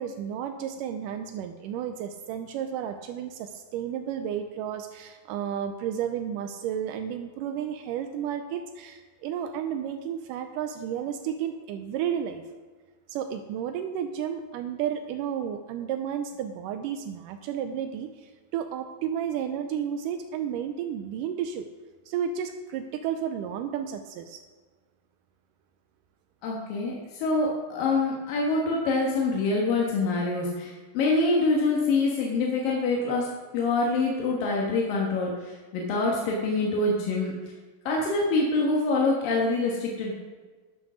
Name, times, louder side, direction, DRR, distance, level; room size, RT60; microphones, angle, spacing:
voice 1, 0.0-12.4 13.1-21.7 22.1-24.4, right 9 dB, 85° right, 7 dB, 2.1 m, -32 dB
voice 2, 26.4-37.3 37.9-40.2, left 3 dB, 90° left, -2 dB, 3.2 m, -25 dB
11.0 x 6.3 x 6.2 m, 1.4 s
omnidirectional pair, 3.9 m